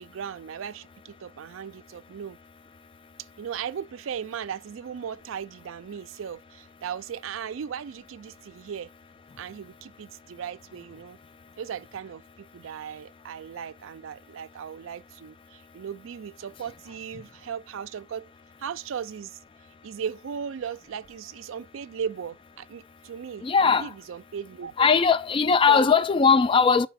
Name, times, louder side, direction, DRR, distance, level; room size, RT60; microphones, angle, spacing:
voice 1, 0.0-2.4 3.2-8.9 9.4-11.2 11.6-18.3 18.6-19.4 19.8-24.9 25.7-25.9, right 7 dB, 80° right, 0.4 m, -37 dB
voice 2, 23.4-23.9 24.8-26.9, left 5 dB, 25° left, 0.3 m, -19 dB
6.6 x 4.7 x 4.1 m
head